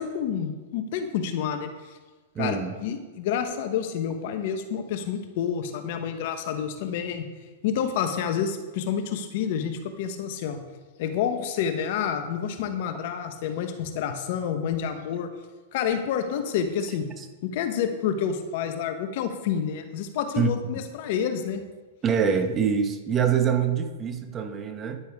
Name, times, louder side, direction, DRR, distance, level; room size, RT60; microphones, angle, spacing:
voice 1, 0.0-1.7 2.4-7.2 7.6-10.6 11.0-15.3 15.7-17.1 17.4-21.6, left 8 dB, 60° left, 7 dB, 1.2 m, -28 dB
voice 2, 2.3-2.7 17.2-17.3 20.4-20.5 22.0-25.0, right 7 dB, 25° right, 7 dB, 1.1 m, -25 dB
10.0 x 9.9 x 3.6 m, 1.3 s
hypercardioid pair, 120°, 0 cm